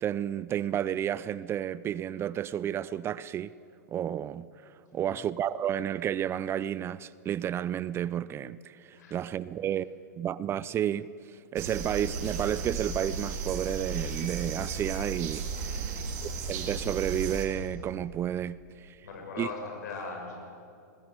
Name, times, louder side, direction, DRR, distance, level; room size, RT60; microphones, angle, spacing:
voice 1, 0.0-3.5 3.9-9.9 10.2-11.1 11.5-15.7 16.2-19.0 19.4-19.5, right 10 dB, 25° right, 0.5 m, -31 dB
sound 1, 11.6-17.5, right 5 dB, 60° right, 4.5 m, -34 dB
voice 2, 15.7-16.0 19.0-20.4, left 4 dB, 65° left, 7.7 m, -39 dB
23.5 x 19.5 x 8.1 m
hypercardioid pair, 115°, 10 cm